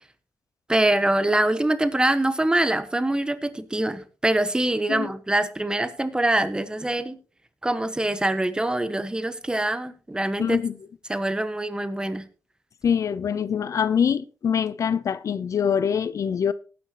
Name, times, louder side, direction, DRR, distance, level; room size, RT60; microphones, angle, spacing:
voice 1, 0.7-7.2 7.6-10.6 11.1-12.2, right 1 dB, 15° right, 1.3 m, -24 dB
voice 2, 10.4-10.7 12.8-16.5, left 7 dB, 70° left, 0.6 m, -24 dB
18.5 x 9.6 x 3.0 m
cardioid pair, 85°, 6 cm